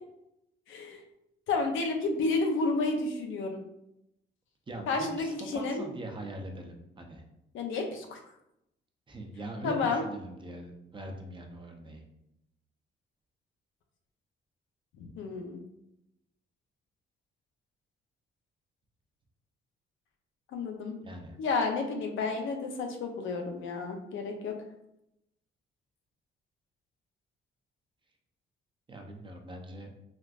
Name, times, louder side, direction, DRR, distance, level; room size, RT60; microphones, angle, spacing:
voice 1, 0.7-1.0 1.5-3.6 4.9-5.8 7.5-8.2 9.6-10.0 15.0-15.6 20.5-20.9 21.4-24.5, left 3 dB, 75° left, 3 dB, 0.6 m, -31 dB
voice 2, 4.7-7.2 9.1-12.0 21.0-21.4 28.9-29.9, right 1 dB, 25° right, 2 dB, 0.6 m, -41 dB
3.5 x 2.5 x 2.4 m, 0.83 s
cardioid pair, 90°, 20 cm